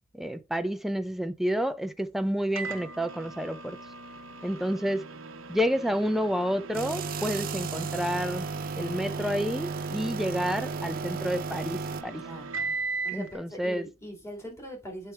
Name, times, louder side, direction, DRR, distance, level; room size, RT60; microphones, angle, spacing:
voice 1, 0.1-3.8 4.4-5.1 5.5-8.5 8.8-12.2 13.1-13.9, equal, ahead, 0.6 m, -29 dB
Microwave oven, 2.6-13.3, right 4 dB, 75° right, 1.0 m, -39 dB
sound 1, 6.7-12.0, right 4 dB, 45° right, 0.6 m, -34 dB
voice 2, 12.2-12.5 13.0-15.1, equal, 15° left, 2.9 m, -41 dB
8.2 x 4.4 x 3.5 m
head